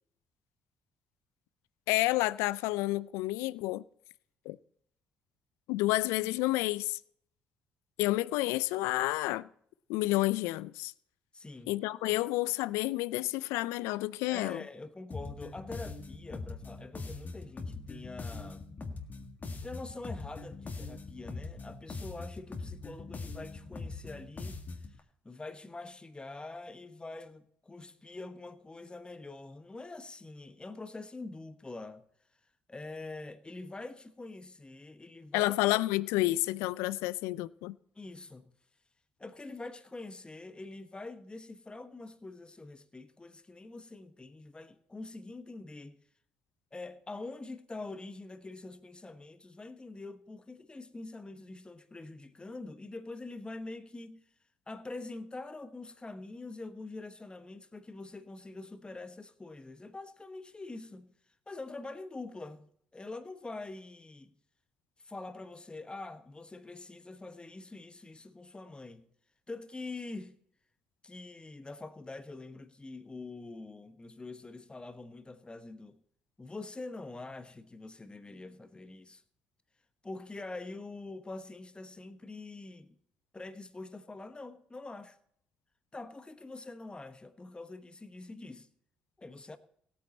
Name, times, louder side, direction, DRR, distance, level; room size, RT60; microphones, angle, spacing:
voice 1, 1.9-3.8 4.5-4.6 5.7-7.0 8.0-9.5 9.9-10.9 11.7-14.6 35.3-37.8, left 18 dB, 75° left, 0.4 m, -30 dB
voice 2, 11.3-11.7 14.3-18.7 19.6-25.0 25.2-32.0 32.7-35.5 37.9-38.5 39.2-46.0 46.7-54.2 54.7-61.1 61.5-62.7 62.9-64.3 65.0-69.1 69.5-70.4 71.0-76.0 76.4-79.2 80.0-83.0 83.3-85.2 85.9-88.7 89.2-89.6, left 2 dB, 20° left, 1.1 m, -45 dB
sound 1, 15.1-25.0, left 3 dB, 40° left, 1.8 m, -42 dB
17.0 x 8.7 x 4.2 m
hypercardioid pair, 50°, 5 cm